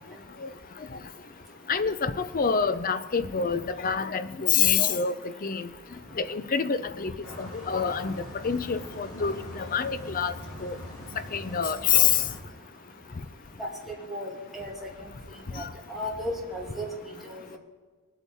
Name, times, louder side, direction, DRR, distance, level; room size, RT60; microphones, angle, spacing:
voice 1, 1.7-5.7 6.2-7.1 7.4-8.1 8.4-10.3 10.6-10.7 11.3-12.2 15.5-15.7, left 7 dB, 40° left, 12 dB, 0.6 m, -26 dB
sound 1, 7.2-12.4, left 1 dB, 85° left, 3.4 m, -42 dB
voice 2, 14.1-14.7 15.5-15.6 15.9-16.9 17.2-17.6, left 1 dB, ahead, -4 dB, 2.3 m, -34 dB
20.5 x 8.1 x 4.2 m, 1.5 s
head